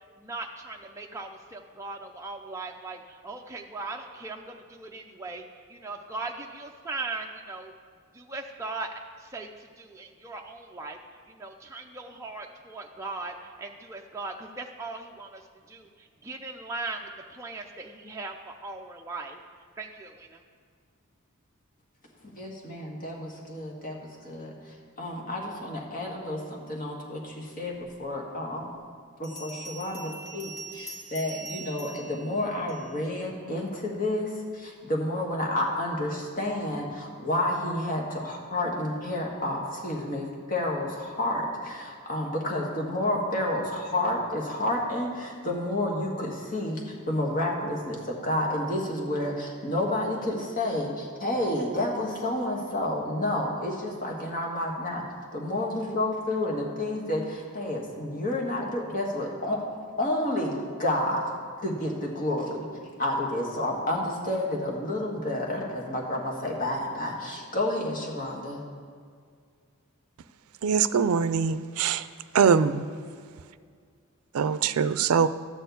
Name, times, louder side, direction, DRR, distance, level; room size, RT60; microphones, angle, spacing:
voice 1, 0.2-5.4 5.7-7.7 8.1-8.9 9.2-11.0 11.3-15.4 15.7-19.4 19.8-20.4, right 3 dB, 15° right, 1 dB, 0.5 m, -39 dB
voice 2, 22.4-27.7 28.0-28.7 29.2-55.0 55.3-59.6 60.0-61.2 61.6-62.7 63.0-68.6 72.4-72.9, left 1 dB, 40° left, -1 dB, 1.7 m, -30 dB
Bell, 29.2-33.1, right 3 dB, 55° left, 1.4 m, -43 dB
voice 3, 70.6-72.0 72.3-72.9 74.3-75.3, right 6 dB, 90° right, 14 dB, 0.4 m, -23 dB
12.0 x 4.5 x 8.2 m, 2.1 s
head